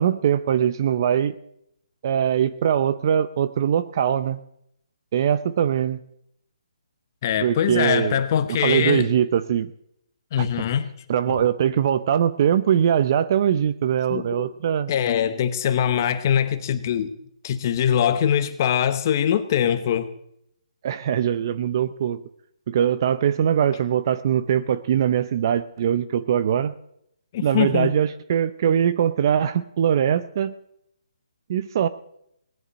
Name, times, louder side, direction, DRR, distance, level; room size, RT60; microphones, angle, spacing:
voice 1, 0.0-1.3 2.0-4.4 5.1-6.0 7.4-8.2 8.6-9.7 10.4-10.5 11.1-14.9 20.8-22.2 22.7-26.7 27.4-30.5 31.5-31.9, right 9 dB, 35° right, 0.6 m, -22 dB
voice 2, 7.2-9.1 10.3-10.9 11.3-11.4 14.1-14.5 14.9-17.1 17.4-20.1 27.3-27.9, left 9 dB, 30° left, 0.9 m, -22 dB
19.0 x 11.0 x 6.3 m
hypercardioid pair, 165°, 3 cm